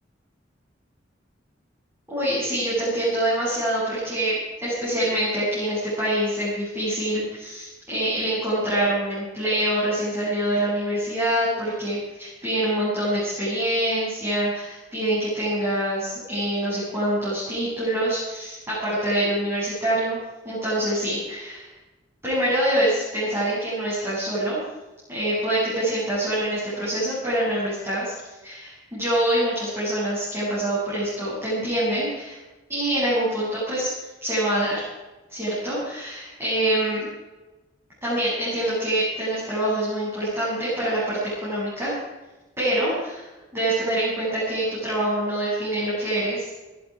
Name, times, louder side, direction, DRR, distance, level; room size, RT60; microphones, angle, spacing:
voice 1, 2.1-20.2 20.4-21.7 22.2-24.6 25.1-32.4 32.7-33.9 34.2-34.7 35.3-37.1 38.0-41.9 42.6-46.6, right 1 dB, 15° right, -10 dB, 8.0 m, -25 dB
21.0 x 13.0 x 4.9 m, 1.1 s
head